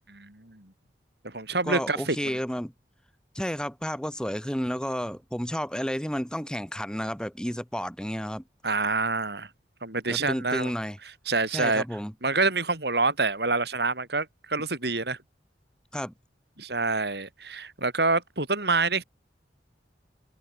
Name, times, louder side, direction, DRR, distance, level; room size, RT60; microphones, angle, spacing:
voice 1, 0.1-0.7 1.2-2.4 8.6-9.5 9.8-10.7 11.3-11.8 12.2-15.2 16.6-19.0, right 3 dB, 65° right, 5.2 m, -27 dB
voice 2, 1.6-2.7 3.3-8.4 10.1-11.0 11.5-12.1 15.9-16.1, equal, 5° left, 4.6 m, -31 dB
head